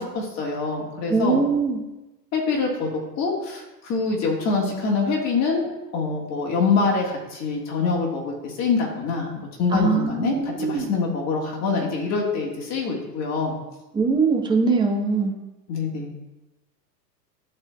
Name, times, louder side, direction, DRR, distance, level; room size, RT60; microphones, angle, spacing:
voice 1, 0.0-1.4 2.3-2.9 3.1-13.6 15.7-16.1, left 4 dB, 30° left, -1 dB, 1.7 m, -25 dB
voice 2, 1.1-1.8 9.7-10.9 13.9-15.3, right 4 dB, 10° right, 1 dB, 0.7 m, -22 dB
13.0 x 4.4 x 2.3 m, 1.0 s
hypercardioid pair, 110°, 50 cm